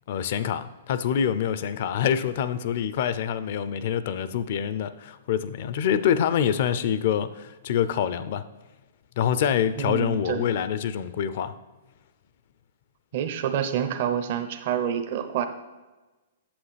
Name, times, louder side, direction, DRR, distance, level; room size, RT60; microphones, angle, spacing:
voice 1, 0.1-8.4 9.2-11.5, left 9 dB, 55° left, 13 dB, 0.5 m, -26 dB
voice 2, 9.8-10.5 13.1-15.5, right 9 dB, 55° right, 8 dB, 0.7 m, -27 dB
8.7 x 7.2 x 3.4 m, 1.2 s
hypercardioid pair, 130°, 0 cm